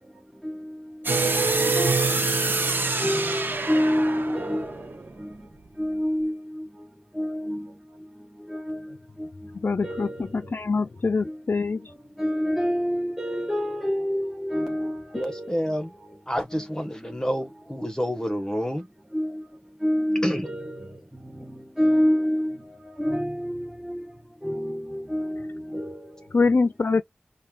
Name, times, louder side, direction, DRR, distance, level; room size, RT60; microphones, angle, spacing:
voice 1, 0.4-0.8 1.5-2.1 3.0-5.4 5.8-6.7 7.1-7.7 8.5-9.3 9.8-10.5 11.2-11.4 12.2-16.2 16.5-16.7 19.1-19.4 19.8-21.0 21.3-24.0 24.4-26.3, equal, 5° right, 1.0 m, -28 dB
sound 1, 1.0-5.9, right 2 dB, 60° right, 1.0 m, -28 dB
sound 2, 1.1-4.1, right 4 dB, 80° right, 0.3 m, -28 dB
voice 2, 9.6-10.1 10.6-11.8 26.3-27.0, left 4 dB, 65° left, 0.4 m, -23 dB
voice 3, 15.1-15.9 16.3-18.9 20.2-20.5, equal, 15° left, 1.2 m, -28 dB
5.4 x 2.3 x 2.4 m
wide cardioid pair, 55°, 4 cm